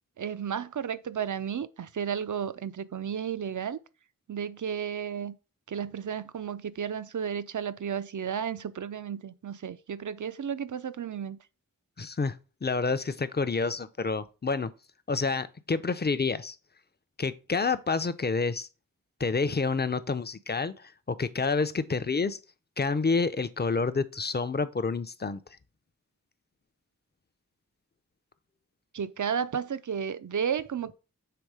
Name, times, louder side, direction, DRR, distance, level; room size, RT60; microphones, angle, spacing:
voice 1, 0.2-3.8 4.3-5.4 5.7-11.4 28.9-30.9, right 7 dB, 60° right, 0.6 m, -33 dB
voice 2, 12.0-14.7 15.1-16.6 17.2-18.7 19.2-22.4 22.8-25.4, left 4 dB, 30° left, 0.6 m, -28 dB
6.8 x 3.6 x 4.8 m
wide cardioid pair, 50°, 34 cm